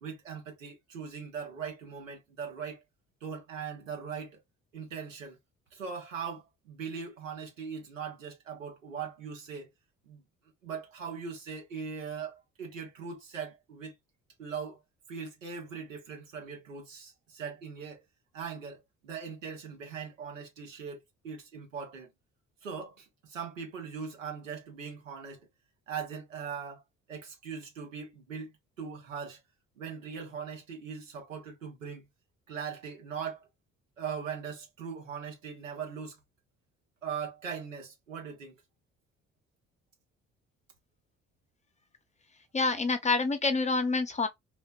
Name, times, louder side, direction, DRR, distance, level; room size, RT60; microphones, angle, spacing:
voice 1, 0.0-2.8 3.2-4.4 4.7-5.4 5.7-9.7 10.1-10.2 10.6-13.9 14.4-14.8 15.1-18.0 18.3-22.1 22.6-25.5 25.9-26.8 27.1-29.4 29.8-32.0 32.5-33.5 34.0-36.2 37.0-38.6, right 6 dB, 90° right, 0.8 m, -40 dB
voice 2, 42.5-44.3, left 3 dB, 20° left, 0.6 m, -27 dB
3.0 x 2.0 x 2.2 m
figure-of-eight pair, 50°, 37 cm